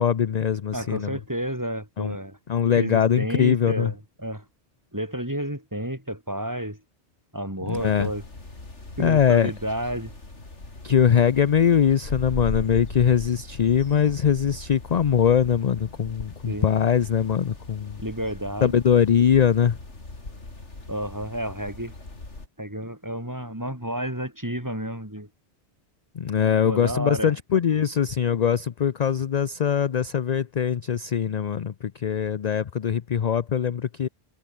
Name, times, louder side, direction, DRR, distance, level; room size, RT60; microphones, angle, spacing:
voice 1, 0.0-1.2 2.0-2.2 2.5-3.9 7.7-8.1 9.0-9.5 10.8-18.0 18.6-19.8 26.1-34.1, left 8 dB, 45° left, 0.6 m, -22 dB
voice 2, 0.7-2.4 2.8-4.4 4.9-6.8 7.3-8.2 9.0-10.1 13.9-14.1 16.5-16.7 18.0-18.8 20.9-21.9 22.6-25.3 26.7-27.3, right 1 dB, 15° right, 4.6 m, -31 dB
sound 1, 7.7-22.5, left 2 dB, 85° left, 4.4 m, -39 dB
omnidirectional pair, 1.2 m